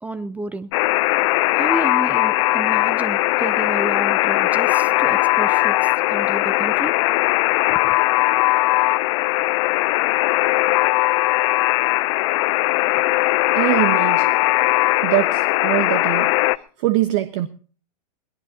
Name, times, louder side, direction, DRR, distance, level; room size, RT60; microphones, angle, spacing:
voice 1, 0.0-0.7 1.6-6.9 7.7-8.0, right 2 dB, 5° right, 0.6 m, -31 dB
Alarm, 0.7-16.6, left 20 dB, 45° left, 0.7 m, -19 dB
voice 2, 13.5-14.3 15.0-16.3 16.8-17.5, right 15 dB, 45° right, 1.2 m, -22 dB
22.0 x 18.5 x 2.9 m
hypercardioid pair, 125°, 21 cm